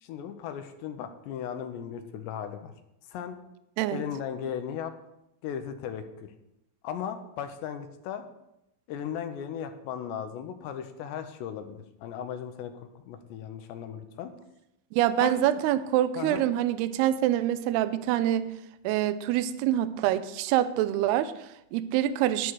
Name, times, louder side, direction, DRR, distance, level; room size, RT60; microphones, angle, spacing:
voice 1, 0.0-2.7 3.1-3.4 3.9-4.9 5.4-6.3 6.8-8.2 8.9-14.3 15.2-15.4 16.2-16.4, left 8 dB, 80° left, 8 dB, 2.9 m, -36 dB
voice 2, 14.9-18.5 18.8-22.5, right 12 dB, 80° right, 14 dB, 2.4 m, -26 dB
10.5 x 10.0 x 4.7 m, 0.85 s
omnidirectional pair, 5.1 m